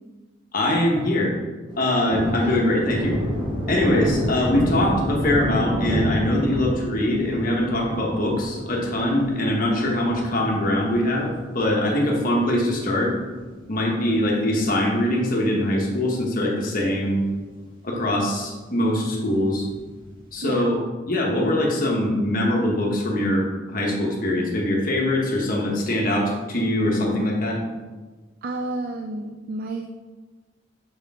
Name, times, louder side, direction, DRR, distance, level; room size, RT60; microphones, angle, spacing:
voice 1, 0.5-1.3 1.8-3.2 3.7-13.1 13.7-17.2 17.8-19.7 20.3-20.8 21.1-27.6, left 1 dB, 50° left, -1 dB, 1.2 m, -22 dB
Thunder, 1.7-12.4 12.8-12.9 13.3-14.8 15.1-15.2 15.6-16.4 16.8-16.9 17.2-17.3 19.7-20.2, equal, 25° right, 1.2 m, -29 dB
voice 2, 28.4-29.9, right 2 dB, 50° right, 5 dB, 0.4 m, -30 dB
6.5 x 4.4 x 3.6 m, 1.3 s
head